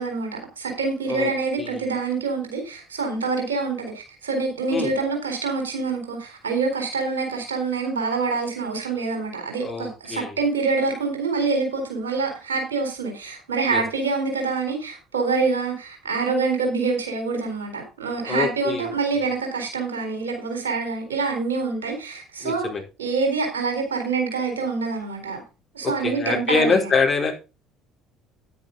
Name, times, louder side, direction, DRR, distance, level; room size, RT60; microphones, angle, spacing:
voice 1, 0.0-22.7 23.0-25.4 25.7-26.8, right 4 dB, 75° right, 3 dB, 4.0 m, -26 dB
voice 2, 9.6-10.3 13.7-13.8 18.3-18.9 22.4-22.8 25.8-27.3, left 4 dB, 35° left, 1 dB, 4.0 m, -24 dB
10.0 x 9.6 x 3.9 m, 0.30 s
figure-of-eight pair, 55°, 0 cm